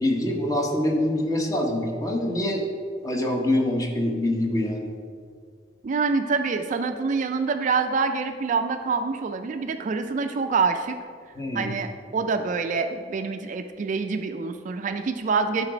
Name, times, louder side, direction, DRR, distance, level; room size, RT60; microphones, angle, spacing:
voice 1, 0.0-2.6 3.0-4.9 11.4-11.7, left 1 dB, 20° left, 1 dB, 0.9 m, -25 dB
voice 2, 5.8-11.0 11.5-15.7, right 4 dB, 45° right, 8 dB, 0.3 m, -26 dB
9.7 x 4.0 x 4.9 m, 2.1 s
head